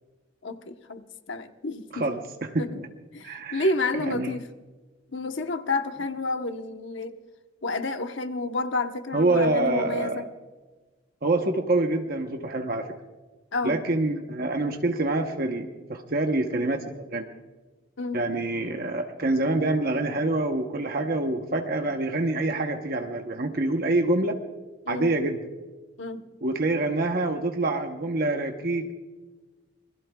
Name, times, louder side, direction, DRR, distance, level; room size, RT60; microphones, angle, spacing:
voice 1, 0.4-2.1 2.6-2.8 3.1-4.4 5.1-7.2 7.6-10.3 13.5-13.8 18.0-18.2 24.9-25.1 26.0-26.2, left 2 dB, 65° left, 7 dB, 1.0 m, -30 dB
voice 2, 1.9-2.9 3.2-3.7 4.0-4.3 9.1-10.3 11.2-12.9 13.6-17.3 18.1-24.4 24.9-25.4 26.4-28.9, right 2 dB, 45° right, 3 dB, 0.9 m, -26 dB
27.0 x 21.5 x 2.3 m, 1.3 s
head